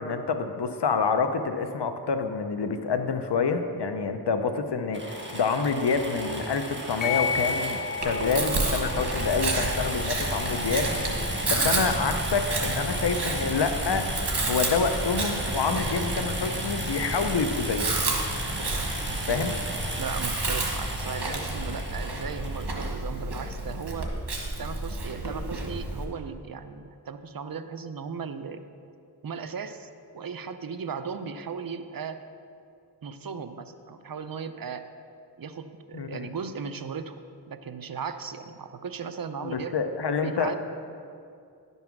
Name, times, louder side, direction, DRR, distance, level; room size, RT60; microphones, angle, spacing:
voice 1, 0.0-10.9 11.5-14.1 14.5-17.9 19.3-19.6 35.9-36.3 39.4-40.6, left 5 dB, 85° left, 8 dB, 0.7 m, -27 dB
sound 1, 4.9-22.7, right 1 dB, 30° right, 1.5 m, -34 dB
sound 2, 7.0-16.0, left 5 dB, 25° left, 1.1 m, -35 dB
Chewing mastication, 8.0-26.0, right 2 dB, 85° right, 1.3 m, -31 dB
voice 2, 20.0-24.1 24.6-28.6 29.2-29.9 30.1-32.2 33.0-34.9 35.4-37.2 37.5-39.7 40.2-40.6, right 6 dB, 60° right, 9 dB, 0.6 m, -36 dB
10.5 x 5.5 x 6.0 m, 2.5 s
wide cardioid pair, 40°, 40 cm